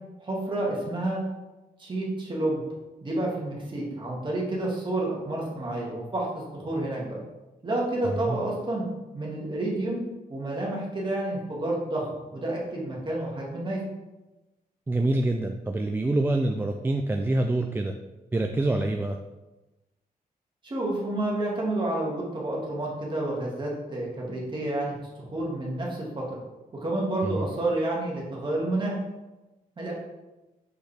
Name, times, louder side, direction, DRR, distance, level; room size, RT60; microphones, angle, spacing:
voice 1, 0.2-1.2 1.8-2.6 3.0-6.3 6.5-7.2 7.6-8.9 9.1-10.0 10.3-13.8 20.6-26.4 26.7-29.0 29.8-29.9, right 1 dB, 30° right, -4 dB, 1.9 m, -29 dB
voice 2, 14.9-17.9 18.3-19.2 27.2-27.5, right 2 dB, 15° right, 4 dB, 0.3 m, -26 dB
6.4 x 5.0 x 3.4 m, 1.1 s
wide cardioid pair, 130°, 15 cm